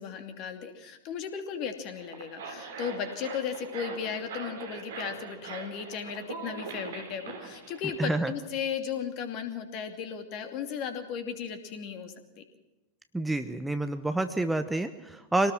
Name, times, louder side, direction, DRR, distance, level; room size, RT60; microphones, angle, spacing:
voice 1, 0.0-12.4, left 7 dB, 40° left, 6 dB, 2.7 m, -36 dB
sound 1, 1.9-8.1, right 5 dB, 60° right, 3.2 m, -42 dB
voice 2, 8.0-8.3 13.1-15.5, right 2 dB, 5° right, 9 dB, 1.0 m, -28 dB
24.5 x 18.5 x 6.1 m, 1.0 s
figure-of-eight pair, 90°, 0 cm